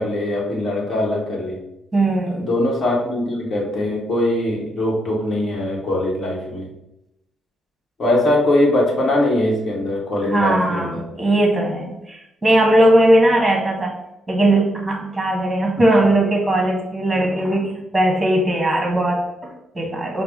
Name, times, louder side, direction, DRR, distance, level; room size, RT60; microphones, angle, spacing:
voice 1, 0.0-1.6 2.3-6.7 8.0-11.0, left 1 dB, 50° left, -2 dB, 1.2 m, -21 dB
voice 2, 1.9-2.5 10.2-14.0 14.3-20.2, right 1 dB, 15° right, 1 dB, 1.0 m, -19 dB
4.6 x 2.1 x 3.5 m, 0.87 s
cardioid pair, 90°, 0 cm